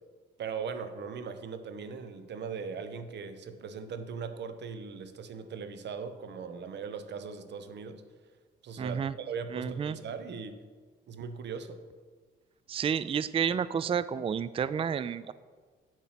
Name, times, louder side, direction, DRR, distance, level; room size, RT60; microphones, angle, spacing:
voice 1, 0.4-8.0 8.6-10.6 11.1-11.8, right 5 dB, 60° right, 10 dB, 1.0 m, -39 dB
voice 2, 8.8-9.1 9.5-10.0 12.7-15.3, right 7 dB, 30° right, 16 dB, 0.4 m, -30 dB
8.1 x 7.3 x 5.8 m, 1.5 s
cardioid pair, 90°, 20 cm